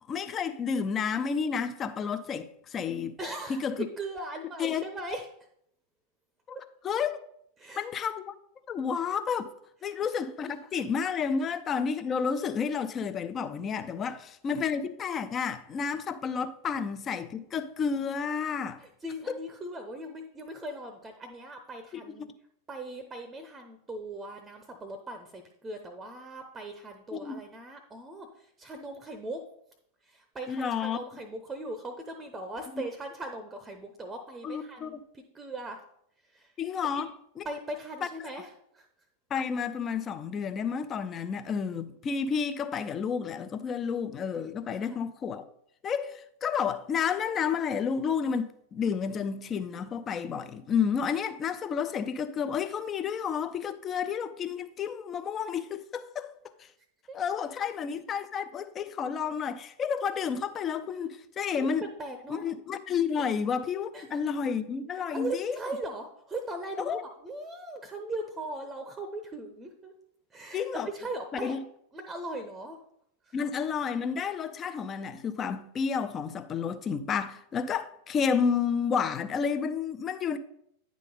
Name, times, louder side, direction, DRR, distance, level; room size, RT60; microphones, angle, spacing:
voice 1, 0.1-3.2 3.5-3.8 4.6-4.8 6.5-6.6 6.8-7.2 7.8-8.3 8.7-9.5 9.8-18.8 19.3-19.4 21.9-22.3 27.1-27.4 30.5-31.0 34.4-34.9 36.6-37.1 37.4-37.5 39.3-45.4 45.8-56.3 56.6-56.7 57.1-61.8 62.3-65.6 66.9-67.0 70.5-70.9 71.4-71.6 73.3-80.4, left 6 dB, 25° left, 0.5 m, -31 dB
voice 2, 3.2-5.3 7.6-7.9 9.9-10.1 10.7-10.8 18.8-22.3 22.7-29.4 30.0-35.8 36.2-36.5 36.8-37.0 37.4-38.9 44.8-45.0 57.1-57.2 61.6-61.7 62.0-62.5 63.2-63.3 63.9-64.2 64.9-69.9 70.3-71.7 71.9-72.8 73.2-73.3, right 2 dB, 15° right, 0.7 m, -39 dB
9.7 x 3.8 x 5.2 m
figure-of-eight pair, 90°, 0 cm